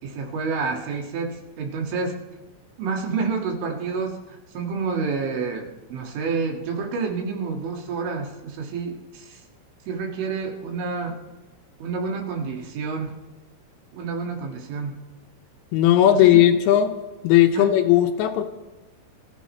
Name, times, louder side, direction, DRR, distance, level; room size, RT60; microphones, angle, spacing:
voice 1, 0.0-2.2 2.8-9.4 9.9-11.2 11.8-13.2 13.9-15.0 15.9-16.5 17.6-17.7, right 4 dB, 85° right, 1 dB, 4.3 m, -29 dB
voice 2, 15.7-17.0 17.2-18.4, left 12 dB, 80° left, 6 dB, 3.0 m, -17 dB
26.0 x 14.0 x 3.2 m, 1.1 s
omnidirectional pair, 5.3 m